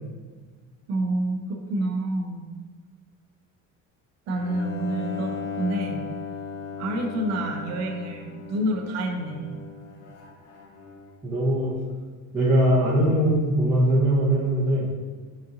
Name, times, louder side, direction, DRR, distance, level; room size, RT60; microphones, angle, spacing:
voice 1, 0.9-2.4 4.3-6.0 6.8-9.6, right 1 dB, 55° right, 3 dB, 0.6 m, -28 dB
Bowed string instrument, 4.3-11.3, left 5 dB, 75° left, 0.7 m, -37 dB
voice 2, 11.2-11.8 12.3-14.9, right 1 dB, 5° right, -12 dB, 0.8 m, -21 dB
4.1 x 3.7 x 2.7 m, 1.5 s
cardioid pair, 170°, 33 cm